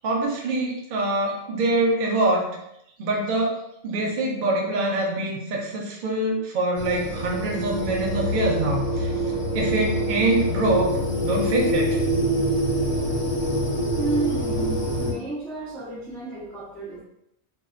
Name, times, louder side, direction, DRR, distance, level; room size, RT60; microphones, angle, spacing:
voice 1, 0.0-2.5 3.0-9.1 9.5-11.0 11.2-12.0, right 2 dB, 65° right, -1 dB, 0.4 m, -24 dB
sound 1, 6.8-15.1, equal, 40° left, 1.2 m, -25 dB
voice 2, 14.0-17.0, right 3 dB, ahead, -8 dB, 0.3 m, -31 dB
2.6 x 2.1 x 2.4 m, 0.78 s
omnidirectional pair, 1.4 m